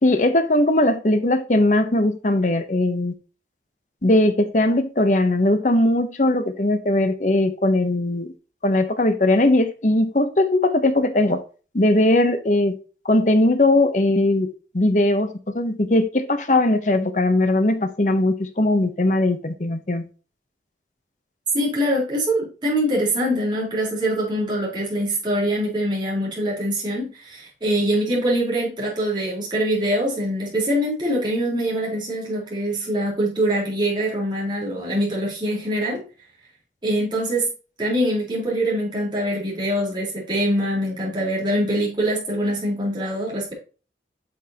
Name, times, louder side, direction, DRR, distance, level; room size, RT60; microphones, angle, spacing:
voice 1, 0.0-3.1 4.0-8.3 8.6-11.4 11.7-12.8 13.0-20.1, left 1 dB, 45° left, 0.9 m, -19 dB
voice 2, 21.5-36.0 36.8-37.5 37.8-43.5, right 1 dB, 25° right, 4.3 m, -23 dB
8.6 x 6.4 x 3.0 m
head